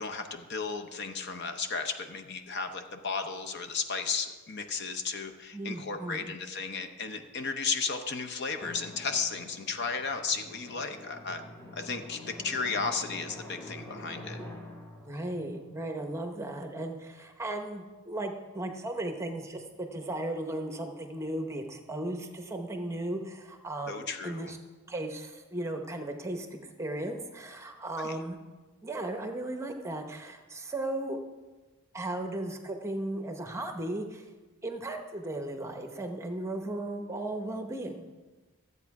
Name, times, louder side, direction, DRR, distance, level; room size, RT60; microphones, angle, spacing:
voice 1, 0.0-11.4 11.7-14.4 23.9-24.5 28.0-28.2, left 5 dB, 50° left, 7 dB, 0.8 m, -34 dB
voice 2, 5.5-6.3 15.0-24.6 24.9-28.4 28.8-31.2 31.9-34.2 34.6-38.0, right 1 dB, 15° right, 4 dB, 0.8 m, -36 dB
Drum, 8.6-16.9, left 1 dB, 15° left, 1.3 m, -46 dB
13.5 x 8.2 x 4.7 m, 1.3 s
head